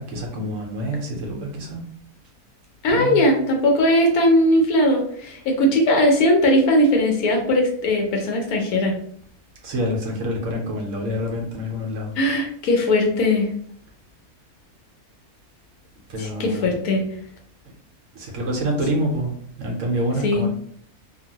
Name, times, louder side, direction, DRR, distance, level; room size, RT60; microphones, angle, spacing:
voice 1, 0.0-1.8 2.9-3.2 9.6-12.1 16.1-16.7 18.1-20.5, equal, 65° right, 0 dB, 1.0 m, -27 dB
voice 2, 2.8-8.9 12.2-13.5 16.2-17.0 20.2-20.4, left 1 dB, 80° left, 1 dB, 1.2 m, -19 dB
2.9 x 2.4 x 2.8 m, 0.62 s
omnidirectional pair, 1.5 m